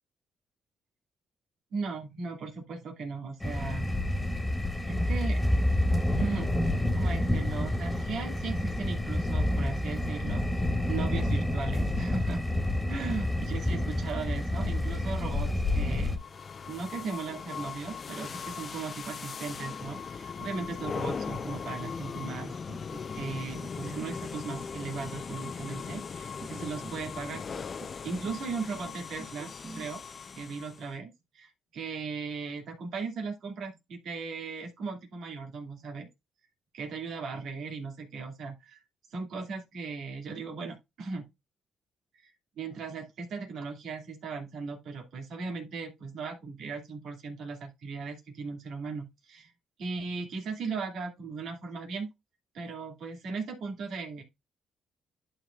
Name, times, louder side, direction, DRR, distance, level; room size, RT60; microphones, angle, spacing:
voice 1, 1.7-4.0 4.6-5.4 6.2-12.4 12.9-16.2 16.7-22.6 23.1-27.4 28.0-30.0 30.3-36.1 36.7-38.8 39.1-41.2 42.1-42.3 42.6-49.5 49.8-52.1 52.5-54.2, right 4 dB, 75° right, 2.3 m, -37 dB
sound 1, 3.4-16.2, left 1 dB, 10° left, 1.9 m, -28 dB
sound 2, 16.1-30.9, left 6 dB, 45° left, 0.6 m, -39 dB
sound 3, 22.7-23.3 23.6-24.2 24.6-25.2 25.4-26.1 26.4-27.0 27.3-28.0 28.2-28.9 29.2-29.9, right 3 dB, 30° right, 1.7 m, -47 dB
11.5 x 4.5 x 2.4 m
cardioid pair, 90°, 0 cm